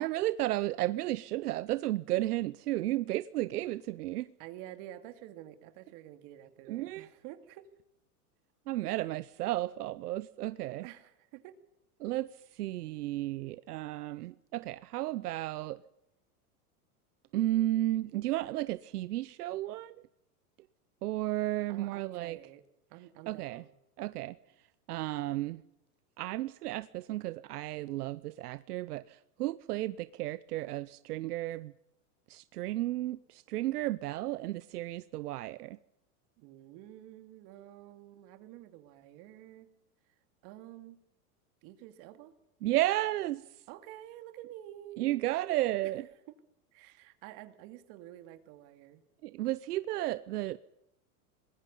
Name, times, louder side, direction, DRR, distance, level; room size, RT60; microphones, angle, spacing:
voice 1, 0.0-4.3 6.7-7.1 8.7-10.9 12.0-15.8 17.3-20.0 21.0-22.4 23.3-23.6 24.0-24.4 24.9-25.6 26.2-31.7 32.3-35.8 42.6-43.4 45.0-46.1 49.2-50.6, right 16 dB, 85° right, 0.8 m, -33 dB
voice 2, 4.1-7.7 10.8-11.6 21.7-22.6 22.9-23.7 36.4-39.7 40.4-41.0 41.6-42.3 43.7-45.1 45.8-45.9 46.3-46.4 46.7-49.0, right 13 dB, 50° right, 2.5 m, -49 dB
26.0 x 20.5 x 5.5 m
supercardioid pair, 145°, 45 cm